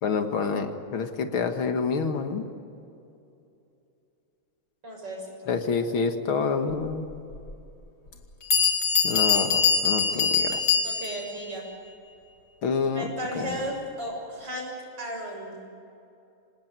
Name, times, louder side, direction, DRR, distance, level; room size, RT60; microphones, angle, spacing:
voice 1, 0.0-2.5 5.5-7.2 9.0-10.8 12.6-13.1 13.4-13.6, left 5 dB, 80° left, 6 dB, 2.5 m, -28 dB
voice 2, 4.8-5.3 10.8-11.6 12.9-15.6, equal, 55° right, 0 dB, 7.6 m, -34 dB
Bell, 7.3-7.4 8.1-8.2 8.5-11.3, left 5 dB, 65° left, 3.2 m, -23 dB
27.0 x 18.5 x 9.4 m, 2.7 s
omnidirectional pair, 2.3 m